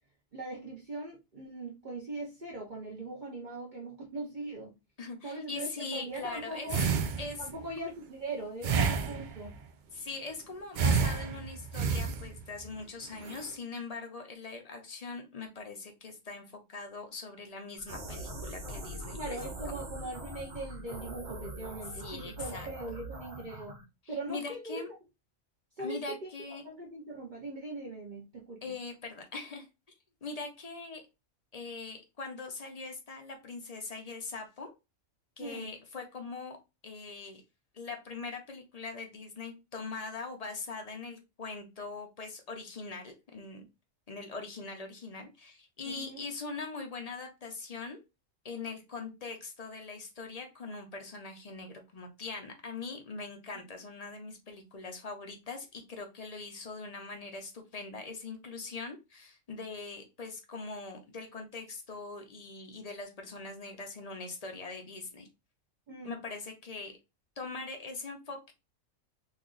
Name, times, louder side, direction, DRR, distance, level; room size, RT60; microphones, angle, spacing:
voice 1, 0.3-4.7 5.2-6.8 7.4-9.6 19.2-23.8 24.1-24.8 25.8-26.3 26.6-28.7 35.4-35.7 45.8-46.2 65.9-66.2, right 2 dB, 45° right, 0.8 m, -40 dB
voice 2, 5.0-6.7 7.2-7.5 9.9-19.8 21.9-22.7 24.0-24.9 25.8-26.6 28.6-29.7 30.2-31.0 31.5-34.7 35.4-36.6 36.8-37.4 37.7-43.6 44.1-48.0 48.4-65.3 66.0-67.0 67.4-68.5, left 4 dB, 40° left, 0.6 m, -42 dB
sound 1, 6.7-7.6 8.6-9.6 10.7-12.6 13.2-13.5, right 5 dB, 80° right, 0.4 m, -30 dB
sound 2, 17.8-23.8, right 1 dB, 60° right, 1.3 m, -42 dB
3.0 x 2.4 x 3.8 m
omnidirectional pair, 1.4 m